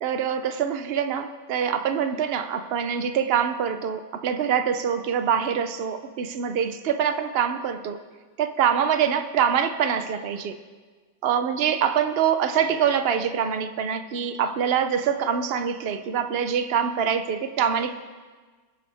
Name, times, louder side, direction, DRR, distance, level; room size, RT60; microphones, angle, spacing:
voice 1, 0.0-8.0 8.4-10.6 11.2-18.0, right 8 dB, 75° right, 9 dB, 0.5 m, -24 dB
22.0 x 9.9 x 3.5 m, 1.4 s
omnidirectional pair, 1.9 m